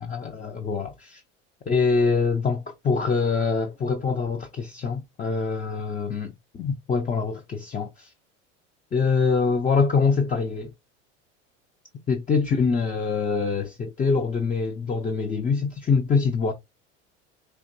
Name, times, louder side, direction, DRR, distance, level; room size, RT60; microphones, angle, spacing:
voice 1, 0.0-1.2 1.7-8.1 8.9-10.7 12.1-16.5, left 5 dB, 20° left, 0.6 m, -24 dB
4.6 x 2.8 x 2.6 m
hypercardioid pair, 80°, 37 cm